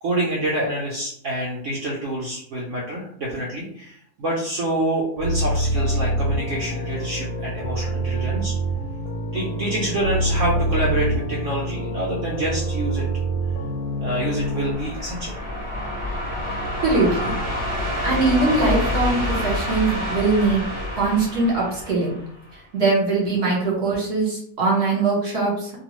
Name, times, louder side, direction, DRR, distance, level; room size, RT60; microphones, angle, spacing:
voice 1, 0.0-8.5 9.3-13.1 14.0-15.4, right 1 dB, 75° right, -4 dB, 0.7 m, -27 dB
sound 1, 5.2-14.8, right 1 dB, 90° left, 1.3 m, -25 dB
sound 2, 14.1-22.5, left 1 dB, 25° right, 0.6 m, -28 dB
voice 2, 16.8-17.3 18.0-20.7 20.9-22.2 22.5-25.7, right 3 dB, 45° right, -4 dB, 1.0 m, -21 dB
2.8 x 2.3 x 2.9 m, 0.66 s
omnidirectional pair, 2.0 m